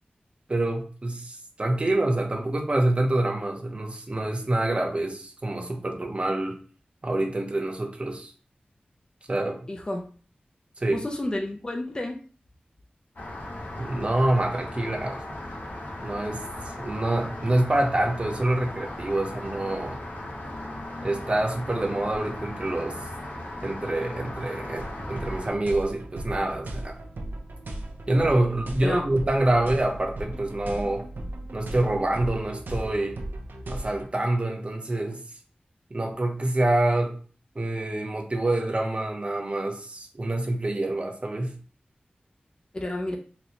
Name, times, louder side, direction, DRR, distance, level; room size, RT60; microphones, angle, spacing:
voice 1, 0.5-6.6 7.0-8.3 9.3-9.6 10.8-11.0 13.8-15.4 16.0-16.4 16.8-20.0 21.0-23.0 23.6-27.0 28.1-31.1 31.5-33.2 33.7-35.2 35.9-37.1 37.5-41.5, right 1 dB, 35° right, 2 dB, 0.7 m, -26 dB
voice 2, 9.7-10.1 10.9-12.2 28.8-29.0 42.7-43.2, left 1 dB, 25° left, 2 dB, 0.5 m, -30 dB
Rain, 13.2-25.5, left 1 dB, 70° left, 0.9 m, -37 dB
sound 1, 24.8-34.1, right 1 dB, 85° right, 0.5 m, -37 dB
4.0 x 2.2 x 2.9 m, 0.42 s
wide cardioid pair, 80°, 3 cm